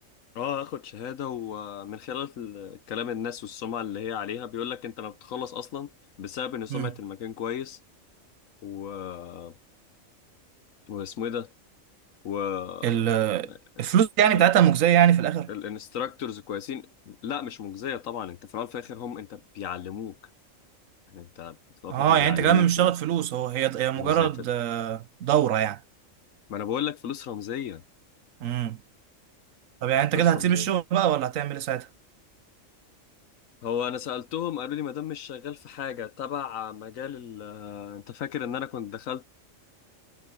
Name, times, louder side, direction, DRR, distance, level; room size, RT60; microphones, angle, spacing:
voice 1, 0.3-5.9 6.2-7.8 8.6-9.6 10.9-11.5 12.2-13.1 13.4-13.8 14.3-14.4 15.5-20.2 21.1-21.6 21.8-22.9 24.0-24.3 26.5-27.8 30.1-30.7 33.6-39.2, left 9 dB, 80° left, 1.2 m, -34 dB
voice 2, 12.8-13.5 13.8-15.5 21.9-25.8 28.4-28.8 29.8-31.9, right 10 dB, 80° right, 1.2 m, -22 dB
omnidirectional pair, 1.4 m